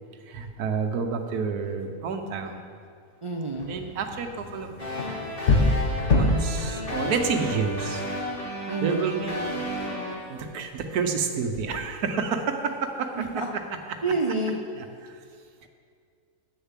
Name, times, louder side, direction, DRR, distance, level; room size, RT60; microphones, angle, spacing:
voice 1, 0.3-2.7 3.7-4.7 6.1-8.0 8.8-9.7 10.3-13.1 14.8-15.1, right 5 dB, 80° right, 6 dB, 1.4 m, -29 dB
voice 2, 3.2-3.8 8.7-9.1 13.2-13.5 14.0-14.6, right 3 dB, 45° right, 1 dB, 0.4 m, -28 dB
sound 1, 3.5-8.4, left 2 dB, 55° left, 1.3 m, -26 dB
sound 2, 4.8-10.1, equal, 35° left, 2.6 m, -33 dB
9.0 x 6.9 x 7.4 m, 2.2 s
omnidirectional pair, 1.6 m